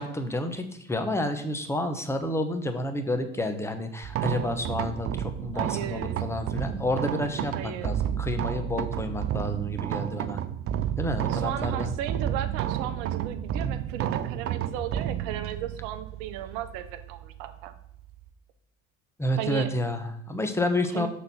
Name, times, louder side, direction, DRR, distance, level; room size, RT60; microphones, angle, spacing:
voice 1, 0.0-10.4 11.0-11.9 19.2-21.1, left 1 dB, 5° left, 6 dB, 0.9 m, -30 dB
sound 1, 4.0-18.3, right 10 dB, 35° right, 0.5 m, -31 dB
voice 2, 5.5-6.2 7.5-8.0 11.3-17.7 19.4-19.7 20.9-21.1, right 10 dB, 60° right, 10 dB, 0.8 m, -35 dB
6.5 x 3.9 x 5.6 m, 0.74 s
hypercardioid pair, 75°, 39 cm